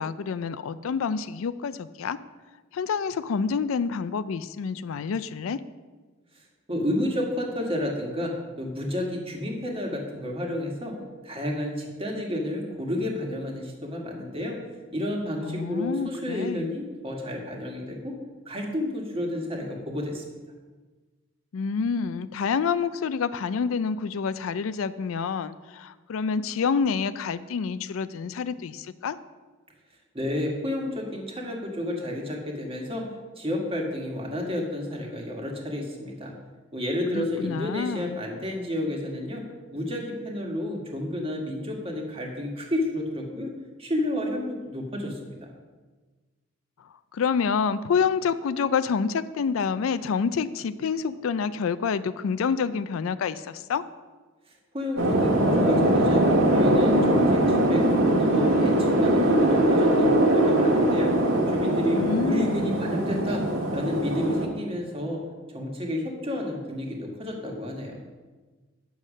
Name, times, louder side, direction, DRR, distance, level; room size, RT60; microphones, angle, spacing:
voice 1, 0.0-2.2 2.7-5.6 15.4-16.7 21.5-29.2 37.1-38.2 47.1-53.8 61.9-62.7, left 6 dB, 75° left, 14 dB, 0.4 m, -28 dB
voice 2, 6.7-10.9 11.2-14.6 14.9-18.1 18.4-20.2 30.1-33.0 33.4-36.3 36.7-39.4 39.7-43.5 43.8-45.3 54.7-57.9 58.2-61.1 61.5-63.4 63.7-65.2 65.5-68.0, left 1 dB, 25° right, 0 dB, 1.6 m, -31 dB
sound 1, 55.0-64.5, right 1 dB, 70° right, 1.6 m, -21 dB
8.2 x 6.4 x 6.2 m, 1.3 s
head